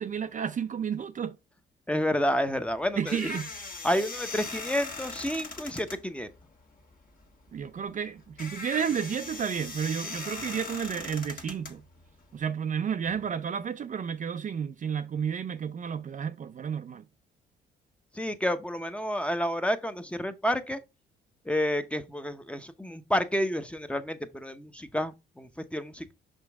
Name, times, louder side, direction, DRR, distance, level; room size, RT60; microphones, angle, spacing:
voice 1, 0.0-1.4 3.0-3.5 7.5-11.8 12.3-17.0, right 7 dB, 40° right, 0.5 m, -31 dB
voice 2, 1.9-3.3 3.8-6.3 18.1-20.8 21.5-26.1, equal, 5° left, 0.7 m, -30 dB
sound 1, 2.5-12.4, left 3 dB, 45° left, 1.4 m, -40 dB
5.8 x 5.2 x 3.5 m
cardioid pair, 90°, 20 cm